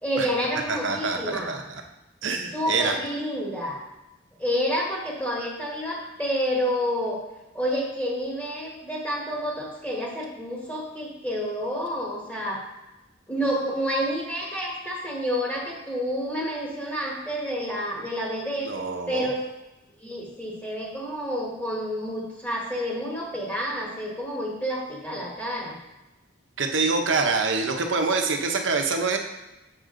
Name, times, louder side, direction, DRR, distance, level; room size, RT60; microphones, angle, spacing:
voice 1, 0.0-1.6 2.5-3.8 4.4-7.2 7.5-12.6 13.3-18.7 19.1-19.3 20.0-25.8, equal, 10° left, -4 dB, 1.4 m, -29 dB
voice 2, 0.7-1.8 2.2-3.0 18.7-19.3 26.6-29.2, right 4 dB, 70° right, 4 dB, 0.9 m, -25 dB
7.1 x 6.6 x 3.8 m, 1.1 s
head